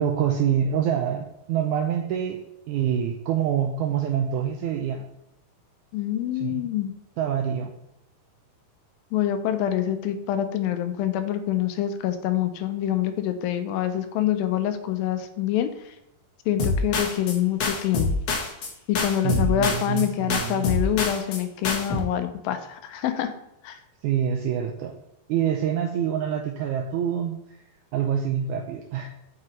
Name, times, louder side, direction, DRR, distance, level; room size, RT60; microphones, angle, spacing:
voice 1, 0.0-2.4 2.7-5.0 6.4-6.7 7.2-7.7 19.2-20.7 24.0-24.9 25.3-27.4 27.9-29.1, right 9 dB, 85° right, 3 dB, 1.7 m, -26 dB
voice 2, 5.9-6.9 9.1-15.7 16.5-18.1 18.9-23.3 23.6-23.8, left 11 dB, 85° left, 9 dB, 2.4 m, -26 dB
sound 1, 16.6-17.4 17.6-18.7 19.0-20.0 20.3-21.4 21.6-22.0, left 3 dB, 65° left, 1.5 m, -26 dB
7.6 x 5.8 x 3.1 m, 0.86 s
omnidirectional pair, 4.1 m